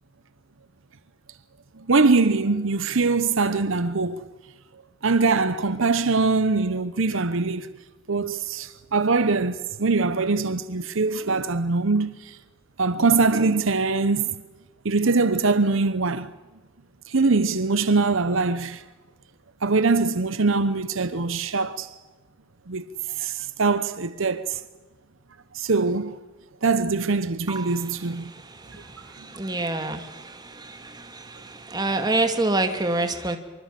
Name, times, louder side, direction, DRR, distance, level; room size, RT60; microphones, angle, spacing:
voice 1, 1.8-4.2 5.0-7.7 8.1-12.4 12.8-14.3 14.8-16.3 17.1-18.8 19.6-21.9 22.7-22.8 23.2-24.6 25.5-26.1 26.6-28.3, right 3 dB, 65° right, 0.9 m, -22 dB
voice 2, 29.4-30.0 31.7-33.4, right 2 dB, 20° right, 2.2 m, -24 dB
25.0 x 24.5 x 7.6 m
head